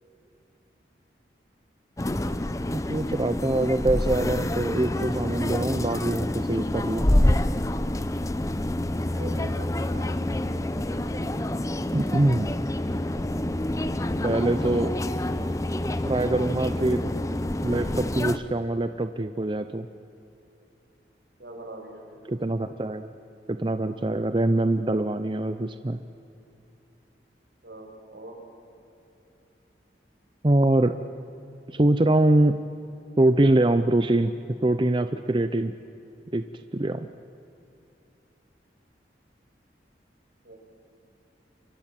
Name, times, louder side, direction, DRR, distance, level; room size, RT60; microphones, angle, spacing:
sound 1, 2.0-18.4, left 1 dB, 20° left, 0.7 m, -27 dB
voice 1, 2.7-7.1 11.9-12.5 14.2-15.0 16.1-17.0 17.6-19.9 22.3-23.1 23.5-26.0 30.4-31.0 31.7-32.6 33.2-35.7 36.3-37.1, right 1 dB, 25° right, 10 dB, 0.6 m, -24 dB
voice 2, 9.0-10.2 21.4-22.3 27.6-28.4 40.4-40.6, right 1 dB, 75° right, 1 dB, 6.2 m, -42 dB
29.5 x 24.0 x 7.5 m, 2.8 s
head